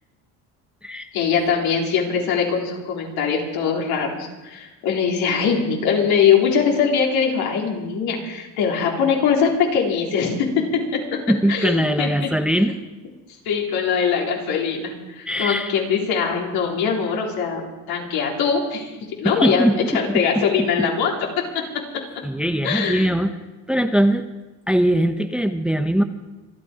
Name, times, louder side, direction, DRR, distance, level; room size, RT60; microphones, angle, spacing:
voice 1, 1.1-11.2 11.5-12.7 13.5-21.3 21.5-21.6 22.6-23.1, left 6 dB, 70° left, -1 dB, 3.9 m, -22 dB
voice 2, 11.3-12.7 15.3-15.7 19.2-20.9 22.2-23.3 23.7-24.3 24.7-26.0, right 1 dB, 5° right, 7 dB, 0.9 m, -21 dB
27.0 x 9.5 x 5.1 m, 1.1 s
supercardioid pair, 95°, 38 cm